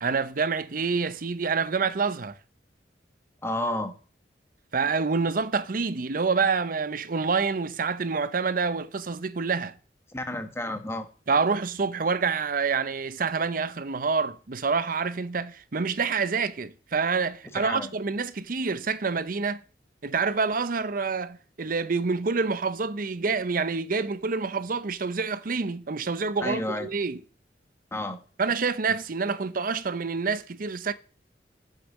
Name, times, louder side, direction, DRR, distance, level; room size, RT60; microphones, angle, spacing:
voice 1, 0.0-2.4 4.7-9.7 11.3-19.6 20.0-27.2 28.4-30.9, right 4 dB, 50° right, 0.7 m, -27 dB
voice 2, 3.4-3.9 10.1-11.1 17.5-17.9 26.4-26.9 27.9-28.2, left 1 dB, 15° left, 1.3 m, -31 dB
8.2 x 6.8 x 7.2 m
head